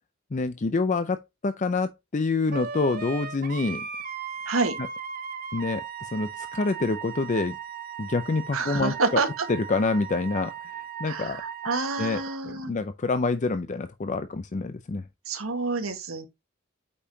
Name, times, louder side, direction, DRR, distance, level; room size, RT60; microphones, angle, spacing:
voice 1, 0.3-3.9 5.5-7.6 8.0-9.2 9.5-11.4 12.0-15.0, left 3 dB, 35° left, 0.5 m, -27 dB
Wind instrument woodwind instrument, 2.5-12.4, right 7 dB, 45° right, 1.4 m, -37 dB
voice 2, 4.4-4.8 8.5-9.4 11.1-12.7 15.2-16.3, right 3 dB, 80° right, 1.6 m, -28 dB
8.4 x 5.4 x 2.8 m
head